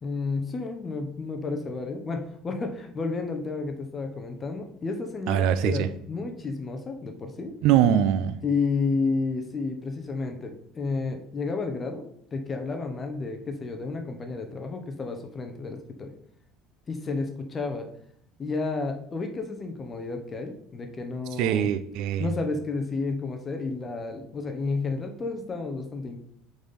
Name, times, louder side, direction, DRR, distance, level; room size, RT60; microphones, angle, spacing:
voice 1, 0.0-7.5 8.4-12.1 12.3-16.1 16.9-17.9 18.4-21.7 22.2-26.2, left 3 dB, 20° left, 5 dB, 0.8 m, -31 dB
voice 2, 5.3-5.9 7.6-8.3 21.4-22.3, right 9 dB, 55° right, 12 dB, 0.6 m, -22 dB
7.1 x 4.1 x 5.3 m, 0.68 s
cardioid pair, 175°, 0 cm